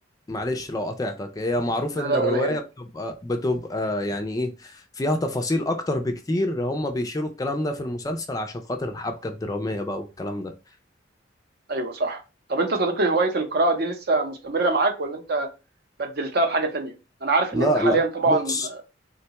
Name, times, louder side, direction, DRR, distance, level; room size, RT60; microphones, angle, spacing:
voice 1, 0.3-10.5 17.5-18.7, left 1 dB, 20° left, 0.3 m, -27 dB
voice 2, 2.0-2.6 11.7-12.2 12.5-15.5 16.0-16.9 17.2-18.8, right 3 dB, 55° right, 0.6 m, -24 dB
3.7 x 2.2 x 2.8 m
head